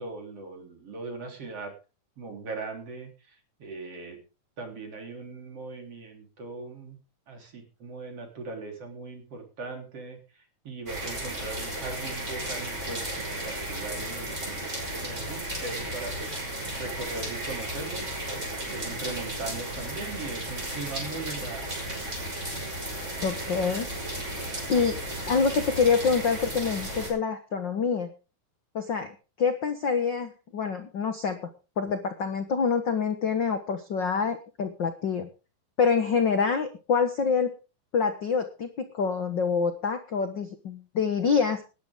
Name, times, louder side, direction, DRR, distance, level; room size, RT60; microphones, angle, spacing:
voice 1, 0.0-1.7 2.2-4.2 4.6-7.0 7.3-16.3 16.8-18.0 18.7-21.8, right 3 dB, 45° right, 3 dB, 4.6 m, -39 dB
sound 1, 10.9-27.1, right 1 dB, 20° right, 6.2 m, -34 dB
voice 2, 23.2-23.9 24.7-25.0 25.3-28.1 28.7-31.5 31.8-35.3 35.8-37.5 37.9-41.6, left 5 dB, 50° left, 8 dB, 1.4 m, -26 dB
19.5 x 10.5 x 3.7 m, 0.32 s
omnidirectional pair, 3.8 m